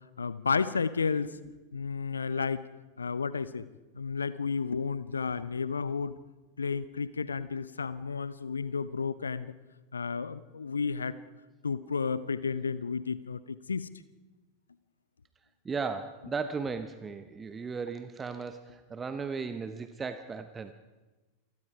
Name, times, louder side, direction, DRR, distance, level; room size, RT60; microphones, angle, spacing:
voice 1, 0.2-1.3 1.7-2.6 3.0-3.7 4.0-6.1 6.6-9.5 9.9-11.1 11.6-13.4 13.7-13.9, left 5 dB, 75° left, 16 dB, 0.7 m, -32 dB
voice 2, 15.6-20.7, right 5 dB, 15° right, 10 dB, 0.9 m, -36 dB
27.5 x 19.5 x 4.9 m, 1.2 s
figure-of-eight pair, 90°, 0 cm